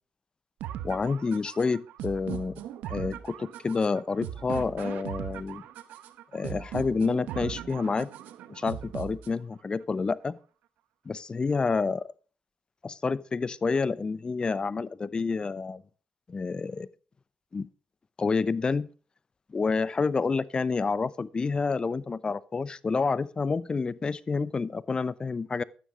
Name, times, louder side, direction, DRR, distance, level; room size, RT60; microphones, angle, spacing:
sound 1, 0.6-9.6, right 11 dB, 85° right, 1.0 m, -39 dB
voice 1, 0.8-2.6 2.9-5.6 6.3-8.1 8.5-10.4 11.1-12.0 12.8-15.8 16.3-16.9 17.5-17.7 18.2-18.9 19.5-25.6, left 4 dB, 35° left, 0.8 m, -28 dB
12.5 x 9.7 x 5.1 m
supercardioid pair, 70°, 3 cm